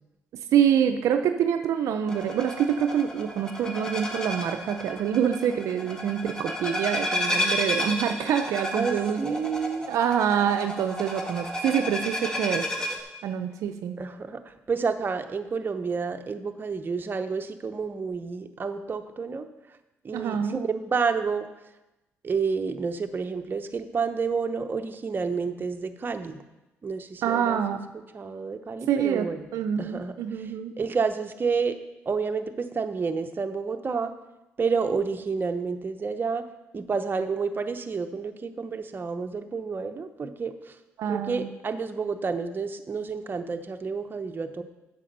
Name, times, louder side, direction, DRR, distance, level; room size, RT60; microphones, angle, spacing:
voice 1, 0.5-9.4 9.9-12.6 13.2-14.0 20.1-20.6 27.2-27.8 28.9-29.3 29.5-30.7 41.0-41.5, right 8 dB, 75° right, 7 dB, 0.5 m, -26 dB
sound 1, 2.1-13.0, left 1 dB, 10° left, 1.8 m, -32 dB
voice 2, 8.7-9.9 14.0-19.5 20.0-21.5 22.2-26.4 26.8-27.6 28.1-29.5 29.8-30.5 30.8-31.8 32.1-34.1 34.6-36.5 36.7-40.8 41.1-44.6, right 5 dB, 40° right, 7 dB, 0.8 m, -29 dB
8.3 x 6.7 x 5.4 m, 0.99 s
supercardioid pair, 65°, 5 cm